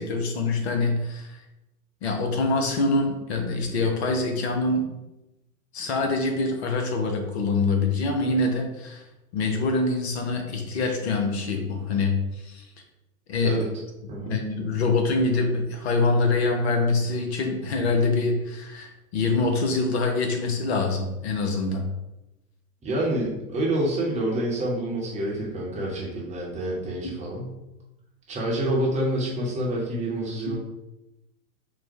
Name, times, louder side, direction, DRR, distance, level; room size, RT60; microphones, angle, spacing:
voice 1, 0.0-1.4 2.0-4.9 5.7-9.0 9.3-12.7 13.3-13.6 14.2-21.9 27.0-27.1, left 3 dB, 45° left, 3 dB, 0.7 m, -25 dB
voice 2, 22.8-27.5 28.3-30.6, right 1 dB, 15° right, -4 dB, 1.0 m, -27 dB
4.3 x 2.1 x 4.3 m, 0.95 s
figure-of-eight pair, 95°, 44 cm